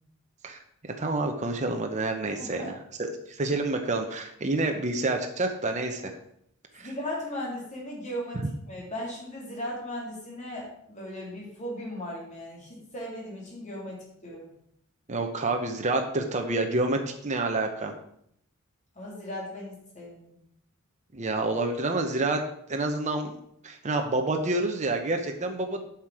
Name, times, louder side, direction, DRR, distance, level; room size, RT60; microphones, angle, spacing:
voice 1, 0.4-2.8 3.3-6.2 6.7-6.9 15.1-18.0 21.1-22.4 22.7-23.3 23.6-25.9, right 2 dB, 35° right, 3 dB, 0.9 m, -28 dB
voice 2, 2.4-2.7 6.8-14.5 18.9-20.4, left 1 dB, 35° left, -3 dB, 3.2 m, -37 dB
8.2 x 5.9 x 4.8 m, 0.71 s
head